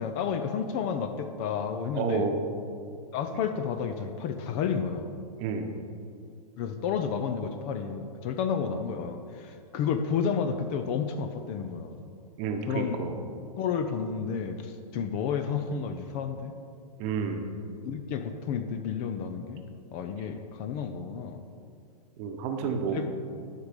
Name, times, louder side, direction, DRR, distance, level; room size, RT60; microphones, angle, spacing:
voice 1, 0.0-2.3 3.1-5.1 6.6-12.0 12.7-13.0 13.6-16.5 17.8-19.6 19.9-21.4 22.6-23.1, left 6 dB, 35° left, 8 dB, 0.6 m, -31 dB
voice 2, 2.0-2.4 5.4-5.7 12.4-13.1 17.0-17.4 22.2-23.0, right 5 dB, 35° right, 4 dB, 1.0 m, -30 dB
11.5 x 5.0 x 5.2 m, 2.3 s
hypercardioid pair, 130°, 21 cm